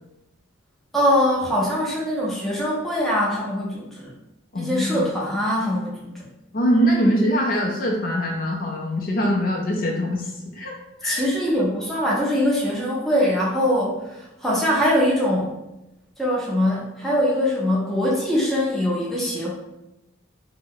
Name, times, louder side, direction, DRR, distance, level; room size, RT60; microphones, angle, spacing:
voice 1, 0.9-4.1 4.5-6.2 11.0-15.5 16.2-19.5, equal, ahead, -6 dB, 0.6 m, -22 dB
voice 2, 4.5-5.1 6.5-10.3 10.6-10.7 11.0-11.2, equal, 45° left, -1 dB, 0.4 m, -22 dB
2.7 x 2.0 x 3.7 m, 0.94 s
head